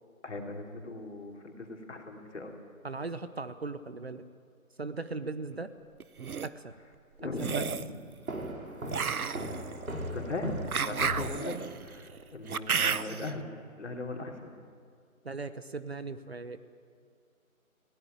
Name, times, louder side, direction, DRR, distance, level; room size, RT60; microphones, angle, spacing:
voice 1, 0.2-2.5 7.2-8.0 10.1-13.5 13.8-14.5, left 2 dB, 55° left, 2 dB, 3.2 m, -38 dB
voice 2, 2.8-4.2 4.8-5.7 6.4-6.7 7.4-7.6 15.2-16.6, right 3 dB, 45° right, 12 dB, 0.8 m, -38 dB
sound 1, 6.0-6.5 7.4-7.9 8.9-13.3, right 6 dB, 85° right, 0.9 m, -32 dB
sound 2, 8.3-12.0, equal, 70° right, 4.4 m, -38 dB
21.0 x 16.5 x 9.0 m, 2.2 s
figure-of-eight pair, 175°, 42 cm